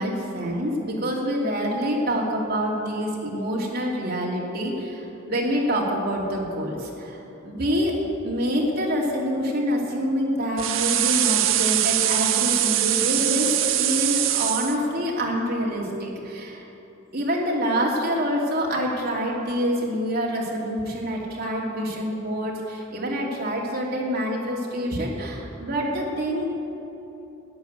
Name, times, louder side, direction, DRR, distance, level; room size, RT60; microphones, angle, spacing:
voice 1, 0.0-8.0 8.2-16.6 17.1-26.5, equal, 50° right, -3 dB, 2.7 m, -26 dB
sound 1, 10.6-14.8, right 12 dB, 70° right, 0.7 m, -22 dB
12.5 x 10.0 x 8.1 m, 3.0 s
head